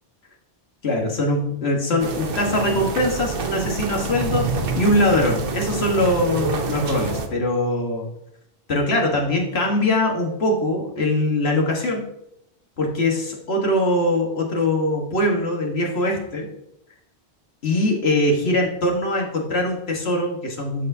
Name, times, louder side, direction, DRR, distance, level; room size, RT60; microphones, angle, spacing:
voice 1, 0.8-4.5 4.7-8.0 8.7-12.1 12.8-16.5 17.6-20.9, left 1 dB, 80° left, 0 dB, 1.7 m, -22 dB
sound 1, 2.0-7.3, right 5 dB, 65° right, 1.0 m, -27 dB
13.5 x 4.4 x 2.7 m, 0.80 s
omnidirectional pair, 1.0 m